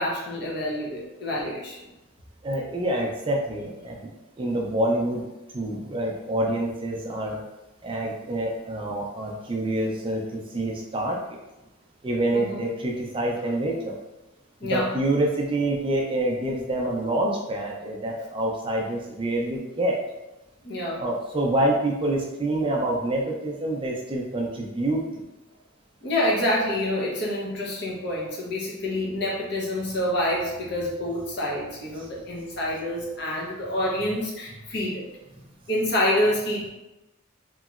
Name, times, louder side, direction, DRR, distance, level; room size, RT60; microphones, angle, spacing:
voice 1, 0.0-1.8 12.3-12.7 14.6-14.9 20.6-21.0 26.0-35.1 35.7-36.7, left 1 dB, 55° left, -3 dB, 0.8 m, -27 dB
voice 2, 2.4-4.1 4.4-5.2 5.5-7.4 7.8-11.4 12.0-14.0 14.7-20.0 21.0-25.2, right 1 dB, 25° right, -1 dB, 0.4 m, -27 dB
2.9 x 2.8 x 2.4 m, 0.98 s
head